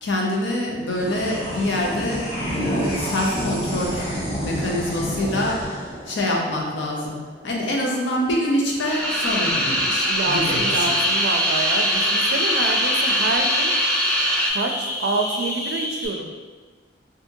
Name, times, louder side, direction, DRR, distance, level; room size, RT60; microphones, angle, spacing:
voice 1, 0.0-4.0 4.4-5.6 6.1-7.2 7.4-10.9, left 1 dB, 85° left, -1 dB, 0.7 m, -25 dB
sound 1, 0.9-7.6, equal, 35° left, 0.9 m, -29 dB
sound 2, 8.8-14.5, equal, 5° left, 0.3 m, -22 dB
voice 2, 10.1-13.7 14.5-16.3, right 3 dB, 70° right, 4 dB, 0.4 m, -27 dB
sound 3, 10.6-16.1, left 1 dB, 65° left, 1.0 m, -28 dB
2.8 x 2.7 x 3.6 m, 1.4 s
head